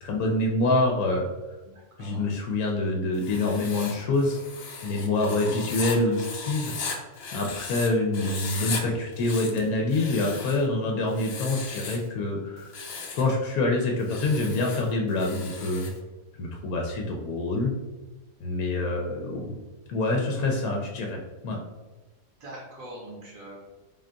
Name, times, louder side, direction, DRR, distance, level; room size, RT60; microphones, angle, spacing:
voice 1, 0.0-1.3 2.0-4.4 4.8-7.0 7.3-12.7 13.1-15.9 16.4-17.8 18.4-19.6 19.9-21.6, left 2 dB, 85° left, 0 dB, 1.1 m, -26 dB
voice 2, 1.7-2.3 22.4-23.6, right 1 dB, 70° right, -3 dB, 1.3 m, -43 dB
Writing, 3.1-7.9 8.1-8.8 9.1-10.7 11.1-12.1 12.6-13.3 14.0-16.0, left 4 dB, 60° left, 0.7 m, -37 dB
3.8 x 2.3 x 3.7 m, 1.2 s
omnidirectional pair, 1.5 m